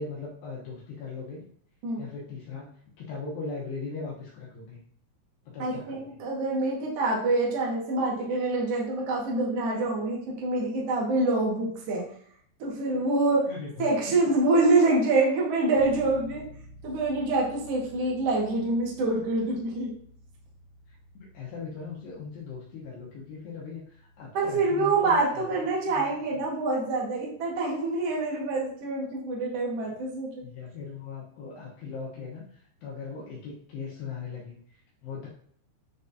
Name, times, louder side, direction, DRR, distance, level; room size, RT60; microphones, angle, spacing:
voice 1, 0.0-1.5 2.0-4.8 5.5-6.2 13.5-13.9 20.9-26.0 30.4-35.3, left 4 dB, 75° left, -4 dB, 2.9 m, -39 dB
voice 2, 5.6-12.0 12.6-13.5 13.8-16.4 16.8-19.9 24.3-30.3, right 2 dB, 60° right, -3 dB, 1.6 m, -26 dB
sound 1, 15.8-30.2, equal, 85° right, 4.5 m, -53 dB
9.5 x 4.0 x 2.7 m, 0.63 s
omnidirectional pair, 5.3 m